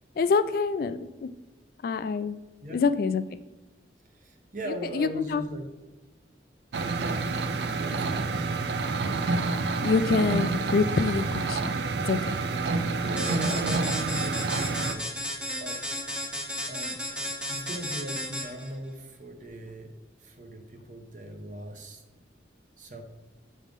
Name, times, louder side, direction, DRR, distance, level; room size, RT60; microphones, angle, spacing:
voice 1, 0.2-1.3 1.8-2.4 2.7-3.4 4.6-5.4 9.8-11.6 12.1-12.3 17.1-17.2, left 4 dB, 55° left, 11 dB, 0.3 m, -26 dB
voice 2, 4.1-5.6 7.8-8.3 13.0-15.8 16.6-17.0 17.5-20.0 20.2-22.0 22.8-23.0, equal, 45° right, 4 dB, 0.9 m, -39 dB
sound 1, 6.7-14.9, right 3 dB, 70° right, 0.4 m, -28 dB
sound 2, 13.2-18.7, left 1 dB, 5° right, 0.7 m, -34 dB
6.4 x 3.3 x 5.2 m, 1.2 s
head